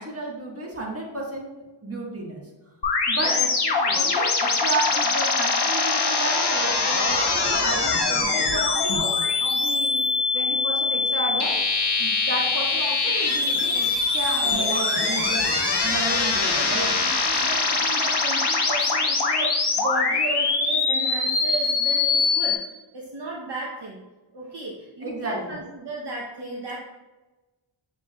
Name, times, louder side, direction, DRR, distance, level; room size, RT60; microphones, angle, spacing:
voice 1, 0.0-1.5 1.8-2.4 3.1-3.3 3.9-10.0 10.3-11.6 12.0-16.9 25.0-25.6, right 2 dB, 30° right, -2 dB, 1.4 m, -32 dB
sound 1, 2.8-22.6, left 4 dB, 55° left, 0.9 m, -23 dB
voice 2, 3.1-4.1 16.4-22.6 22.9-24.0 24.3-26.8, right 2 dB, 55° right, -3 dB, 0.8 m, -35 dB
6.9 x 3.2 x 2.3 m, 1.1 s
cardioid pair, 40°, 50 cm